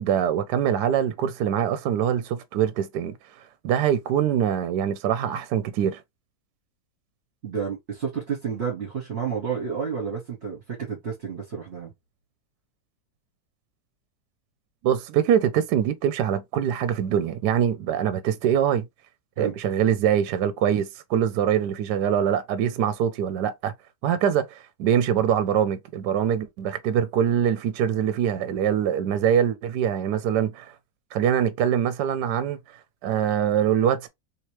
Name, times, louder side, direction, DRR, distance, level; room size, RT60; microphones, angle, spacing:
voice 1, 0.0-3.1 3.6-6.0 14.8-18.9 19.4-23.7 24.0-30.7 31.1-32.6 33.0-34.1, right 9 dB, 75° right, 1.1 m, -23 dB
voice 2, 7.4-11.9 19.4-19.6, right 6 dB, 45° right, 1.4 m, -30 dB
3.3 x 3.0 x 3.0 m
omnidirectional pair, 1.9 m